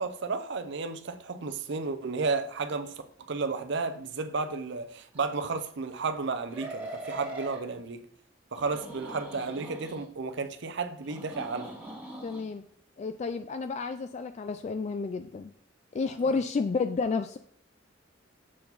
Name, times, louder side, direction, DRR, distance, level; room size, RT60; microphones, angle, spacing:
voice 1, 0.0-2.9 3.3-8.0 8.5-11.8, right 4 dB, 65° right, 0.6 m, -32 dB
sound 1, 5.1-5.2 6.5-7.6 8.6-10.0 11.0-12.4, right 1 dB, 10° right, 2.0 m, -41 dB
voice 2, 12.2-12.6 13.0-15.5 15.9-17.4, left 4 dB, 35° left, 0.3 m, -31 dB
7.3 x 4.6 x 3.9 m
head